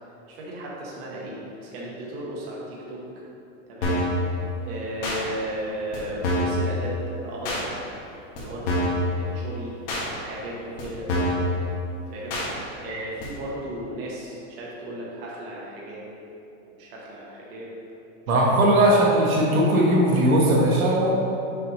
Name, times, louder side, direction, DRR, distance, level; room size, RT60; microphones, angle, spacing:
voice 1, 0.3-3.0 3.7-4.1 4.6-7.8 8.4-8.9 9.2-9.7 10.1-11.5 12.1-12.3 12.8-16.1 16.7-17.7 18.4-18.6, right 1 dB, 45° right, -5 dB, 1.2 m, -35 dB
sound 1, 3.8-4.2 5.0-5.2 5.9-6.0 6.2-6.6 7.4-7.6 8.4-8.5 8.7-9.0 9.9-10.0 10.8-10.9 11.1-11.4 12.3-12.5 13.2-13.3, left 1 dB, 40° left, 1.5 m, -25 dB
voice 2, 18.3-21.1, right 1 dB, 80° right, -3 dB, 1.3 m, -19 dB
6.8 x 5.2 x 3.0 m, 2.8 s
supercardioid pair, 175°, 41 cm